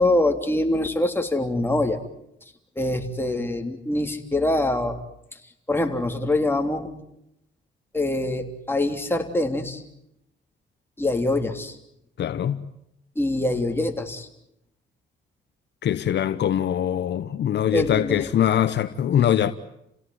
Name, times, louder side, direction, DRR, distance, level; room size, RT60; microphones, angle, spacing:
voice 1, 0.0-2.0 2.7-5.0 5.7-6.9 7.9-9.8 11.0-11.8 13.1-14.3 17.7-18.3, left 2 dB, 10° left, 3.4 m, -24 dB
voice 2, 12.2-12.7 15.8-19.5, left 10 dB, 60° left, 1.0 m, -22 dB
29.5 x 17.0 x 9.5 m
cardioid pair, 90°, 20 cm